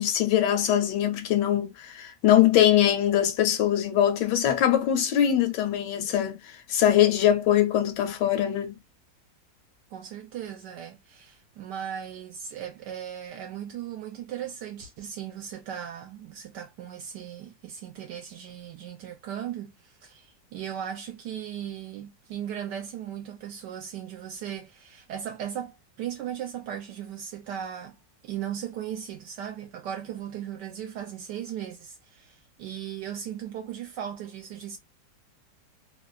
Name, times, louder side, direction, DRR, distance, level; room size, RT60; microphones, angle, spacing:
voice 1, 0.0-8.8, left 11 dB, 75° left, 1.2 m, -22 dB
voice 2, 9.9-28.0 28.2-34.8, right 9 dB, 75° right, 1.2 m, -37 dB
3.0 x 2.1 x 2.3 m
omnidirectional pair, 2.0 m